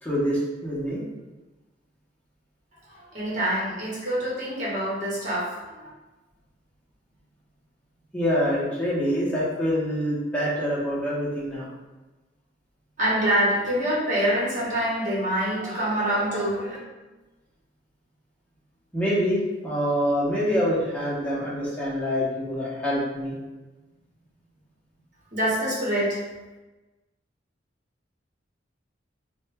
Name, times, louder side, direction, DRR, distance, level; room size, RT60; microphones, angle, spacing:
voice 1, 0.0-1.0 8.1-11.7 18.9-23.4, equal, 10° left, -9 dB, 0.9 m, -25 dB
voice 2, 2.9-5.9 13.0-16.8 25.3-26.2, right 1 dB, 45° right, -6 dB, 1.1 m, -25 dB
3.5 x 2.2 x 3.3 m, 1.1 s
head